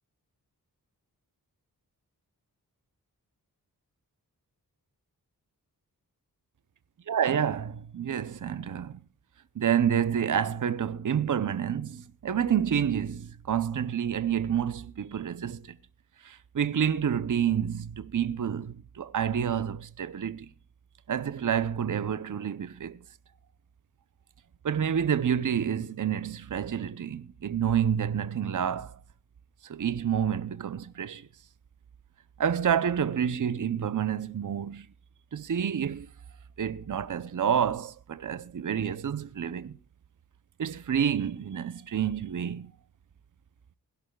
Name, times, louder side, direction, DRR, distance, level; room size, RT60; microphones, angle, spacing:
voice 1, 7.1-9.0 9.6-15.7 16.2-20.5 21.1-23.0 24.6-29.0 29.7-31.3 32.4-34.9 35.3-36.1 36.6-39.8 40.6-42.7, right 8 dB, 55° right, 0.7 m, -28 dB
22.0 x 11.5 x 2.3 m
wide cardioid pair, 60°, 37 cm